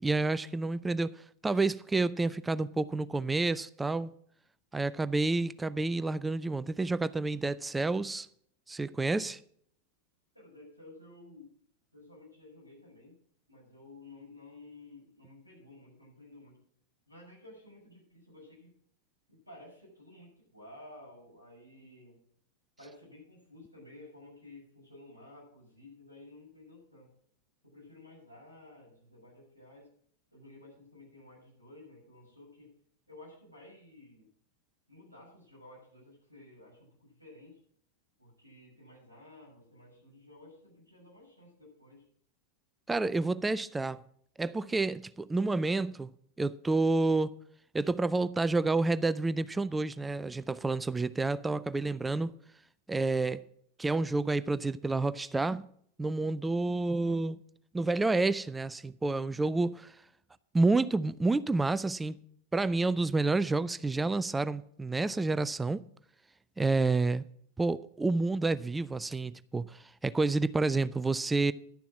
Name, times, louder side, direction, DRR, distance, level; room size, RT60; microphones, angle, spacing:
voice 1, 0.0-4.1 4.7-8.3 8.7-9.4 42.9-44.0 44.4-46.1 46.4-47.3 47.7-52.3 52.9-53.4 53.8-55.6 56.0-57.4 57.7-60.0 60.5-62.2 62.5-65.8 66.6-67.2 67.6-71.5, right 3 dB, 10° right, 0.4 m, -29 dB
voice 2, 10.3-11.5 11.9-13.1 13.5-16.6 17.1-18.7 19.3-22.2 22.8-27.1 27.6-29.9 30.3-32.7 33.1-34.3 34.9-37.6 38.2-42.0, left 2 dB, 90° left, 6.7 m, -53 dB
11.0 x 6.9 x 7.4 m
figure-of-eight pair, 90°, 0 cm